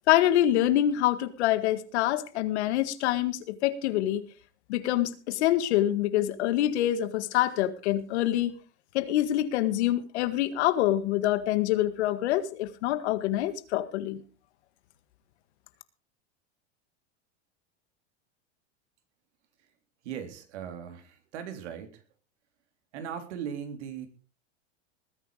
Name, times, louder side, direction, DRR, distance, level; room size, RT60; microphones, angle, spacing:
voice 1, 0.1-4.3 4.7-8.6 8.9-14.2, left 13 dB, 70° left, 13 dB, 1.8 m, -26 dB
voice 2, 20.0-22.0 22.9-24.1, right 8 dB, 75° right, 8 dB, 3.7 m, -38 dB
20.0 x 9.2 x 5.1 m, 0.36 s
supercardioid pair, 130°, 35 cm